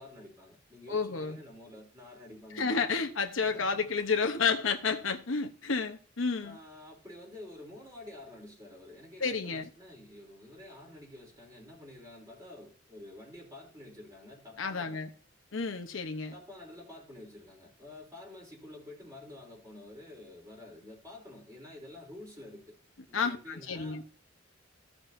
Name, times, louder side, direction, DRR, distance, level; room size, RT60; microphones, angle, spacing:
voice 1, 0.0-2.8 3.4-3.8 6.4-15.0 16.3-22.8 23.1-24.1, left 1 dB, 20° right, 3.5 m, -49 dB
voice 2, 0.9-1.4 2.6-6.6 9.2-9.7 14.6-15.1 15.5-16.3 23.1-24.0, left 5 dB, 80° left, 1.0 m, -31 dB
15.0 x 6.0 x 2.7 m
head